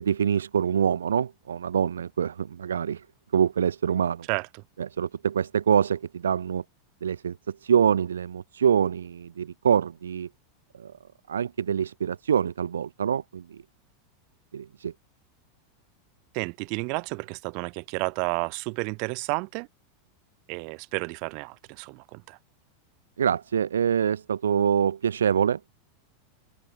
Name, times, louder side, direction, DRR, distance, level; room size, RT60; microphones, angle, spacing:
voice 1, 0.0-3.0 3.3-4.3 4.8-6.6 7.0-10.3 10.8-10.9 11.3-13.6 14.5-14.9 23.2-25.7, right 8 dB, 90° right, 1.5 m, -25 dB
voice 2, 16.3-19.7 20.5-22.4, right 36 dB, 55° right, 7.5 m, -31 dB
hypercardioid pair, 100°, 0 cm